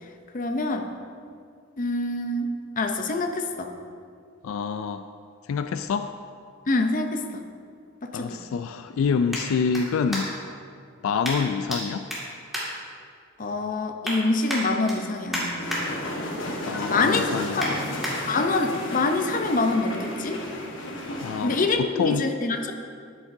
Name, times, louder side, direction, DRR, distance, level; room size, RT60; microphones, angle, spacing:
voice 1, 0.3-0.9 1.8-3.7 6.7-7.4 8.1-8.4 13.4-15.6 16.9-17.2 17.6-17.7 18.3-20.4 21.4-22.7, left 3 dB, 40° left, 5 dB, 0.6 m, -25 dB
voice 2, 4.4-5.0 5.5-6.1 8.1-10.3 11.0-12.1 16.7-17.9 21.2-22.3, left 5 dB, 80° left, 9 dB, 0.3 m, -27 dB
sound 1, 6.6-10.6 11.2-11.8 12.1-13.4 13.7-14.2 14.5-15.8 16.2-16.5 16.8-18.1 18.7-18.8, equal, ahead, 2.0 m, -34 dB
sound 2, 15.6-21.6, left 1 dB, 65° left, 1.3 m, -33 dB
11.5 x 8.5 x 2.7 m, 2.3 s
head